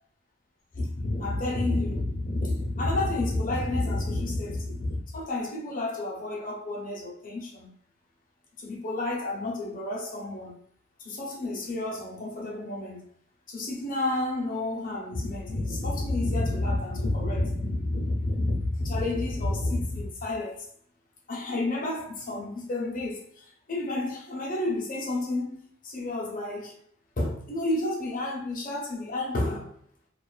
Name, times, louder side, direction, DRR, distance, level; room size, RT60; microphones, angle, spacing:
voice 1, 0.7-7.7 8.6-10.6 11.0-13.0 13.5-20.7 21.3-26.8 27.2-29.7, left 2 dB, 40° left, 0.7 m, -30 dB
2.5 x 2.3 x 2.3 m
head